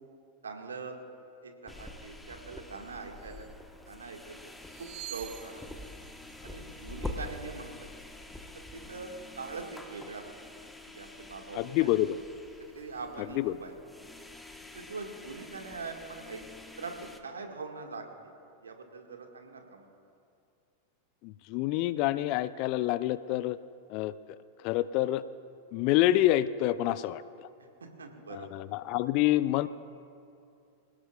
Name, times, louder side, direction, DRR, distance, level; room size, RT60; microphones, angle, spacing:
voice 1, 0.4-1.0 1.4-3.5 3.8-4.5 4.8-5.6 6.4-7.9 8.5-10.3 10.9-12.0 12.6-13.8 14.7-16.4 16.8-18.3 18.6-19.9 27.8-28.6, right 4 dB, 70° right, 3 dB, 2.0 m, -43 dB
sound 1, 1.7-17.2, left 2 dB, 5° left, 1.4 m, -46 dB
sound 2, 2.8-2.9 3.1-3.6 4.5-7.6 9.8-10.2 11.0-11.3 11.6-13.1, right 16 dB, 45° right, 0.8 m, -51 dB
voice 2, 11.5-12.2 13.4-13.5 21.2-23.6 23.9-24.1 24.6-25.2 25.7-27.5 28.5-29.7, left 15 dB, 45° left, 16 dB, 0.5 m, -27 dB
26.5 x 17.5 x 2.5 m, 2.5 s
figure-of-eight pair, 90°, 0 cm